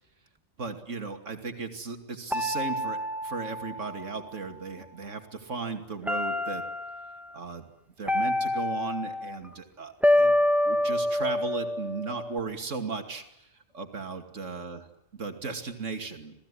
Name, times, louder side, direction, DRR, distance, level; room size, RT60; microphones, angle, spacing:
voice 1, 0.6-6.7 7.3-7.7 8.0-10.4 10.6-13.5 13.7-14.8 15.1-16.3, right 4 dB, 80° right, 6 dB, 2.8 m, -36 dB
sound 1, 2.3-4.7 6.1-7.1 8.1-9.4 10.0-12.4, left 1 dB, ahead, 2.2 m, -27 dB
28.5 x 19.0 x 9.9 m, 0.81 s
omnidirectional pair, 1.3 m